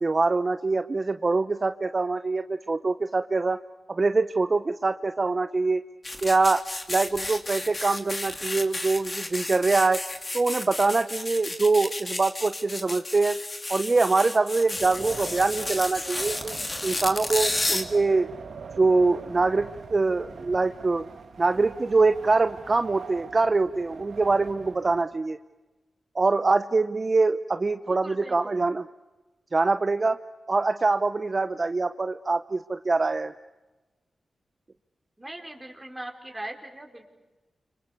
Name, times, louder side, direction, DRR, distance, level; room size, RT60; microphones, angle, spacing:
voice 1, 0.0-3.6 3.9-5.8 6.2-10.0 10.3-13.4 13.7-16.6 16.8-18.3 18.8-21.1 21.4-25.4 26.1-28.8 29.5-30.2 30.5-33.3, right 3 dB, 40° right, 10 dB, 0.8 m, -24 dB
sound 1, 6.0-17.8, left 2 dB, 30° left, 3.0 m, -32 dB
Wind, 14.7-25.0, right 5 dB, 75° right, 2.0 m, -43 dB
voice 2, 28.0-28.5 35.2-37.0, right 1 dB, 15° right, 2 dB, 5.1 m, -40 dB
30.0 x 26.0 x 6.8 m, 1.1 s
cardioid pair, 55°, 0 cm